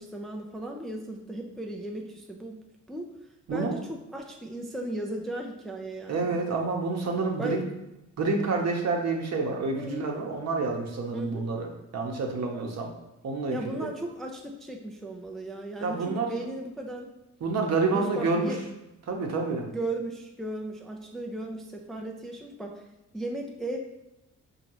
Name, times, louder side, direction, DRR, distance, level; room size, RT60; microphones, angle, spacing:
voice 1, 0.0-2.6 2.9-3.1 3.5-6.4 7.4-7.6 9.7-10.1 11.1-11.5 13.5-17.1 17.9-18.6 19.7-22.8 23.1-23.8, right 1 dB, ahead, 0 dB, 0.5 m, -36 dB
voice 2, 3.5-3.8 6.1-7.6 8.2-11.7 11.9-12.9 13.2-13.9 15.8-16.3 17.4-18.5 19.1-19.7, right 3 dB, 55° right, 1 dB, 0.9 m, -28 dB
5.1 x 2.8 x 2.9 m, 0.92 s
cardioid pair, 85°, 32 cm